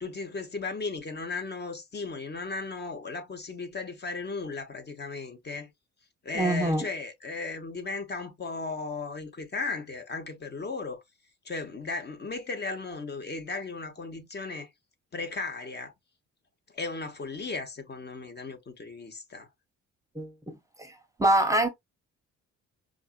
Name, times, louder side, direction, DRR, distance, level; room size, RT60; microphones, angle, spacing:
voice 1, 0.0-5.7 6.2-11.0 11.4-14.7 15.1-15.9 16.7-19.5, left 3 dB, 35° left, 0.9 m, -36 dB
voice 2, 6.3-6.8 20.2-20.9 21.2-21.7, right 1 dB, 10° right, 0.8 m, -25 dB
4.9 x 2.5 x 2.3 m
cardioid pair, 90°, 30 cm